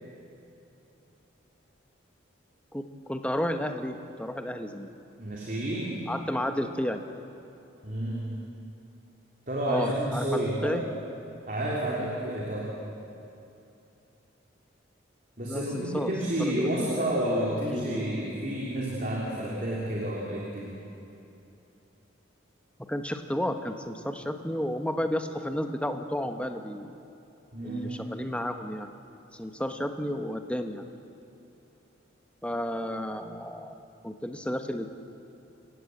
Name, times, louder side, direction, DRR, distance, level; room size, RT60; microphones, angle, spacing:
voice 1, 2.7-4.9 6.1-7.0 9.7-10.8 15.4-16.1 16.4-17.0 17.5-18.2 22.9-26.9 27.6-28.9 29.3-30.8 32.4-33.7 34.0-34.9, equal, 5° left, 6 dB, 1.1 m, -32 dB
voice 2, 5.2-6.0 7.8-8.3 9.5-10.8 11.5-12.7 15.4-20.7 27.5-27.9, right 1 dB, 45° right, -4 dB, 3.5 m, -30 dB
28.5 x 17.0 x 7.9 m, 2.8 s
head